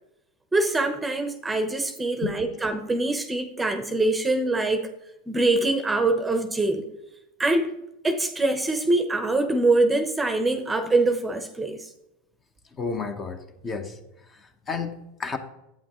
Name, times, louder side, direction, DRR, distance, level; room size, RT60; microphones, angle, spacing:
voice 1, 0.5-4.9 5.3-6.9 7.4-7.7 8.0-11.9, right 2 dB, 10° right, 0.9 m, -24 dB
voice 2, 12.7-14.0 14.3-15.4, left 5 dB, 25° left, 1.0 m, -32 dB
11.0 x 8.5 x 3.1 m
supercardioid pair, 125°, 0 cm